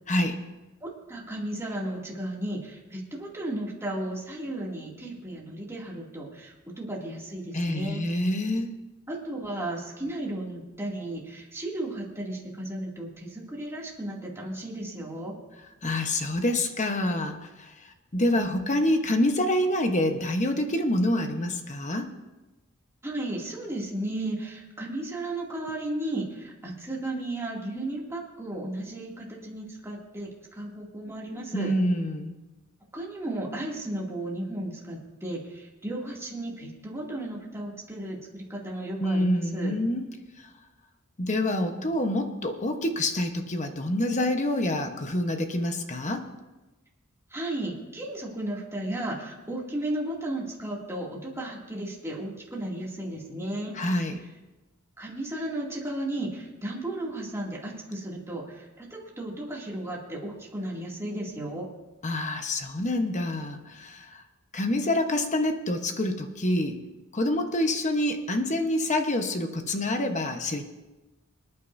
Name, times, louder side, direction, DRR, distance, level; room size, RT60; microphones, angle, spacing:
voice 1, 0.1-0.4 7.5-8.7 15.8-17.7 18.1-22.1 31.5-32.3 39.0-40.1 41.2-46.3 53.7-54.2 62.0-64.2 64.5-66.8 67.1-70.6, left 1 dB, 35° left, 6 dB, 1.1 m, -27 dB
voice 2, 0.8-8.1 9.1-15.4 23.0-31.7 32.9-39.8 47.3-53.8 55.0-61.7, right 1 dB, 10° right, -4 dB, 2.5 m, -34 dB
27.0 x 9.4 x 2.7 m, 1.1 s
head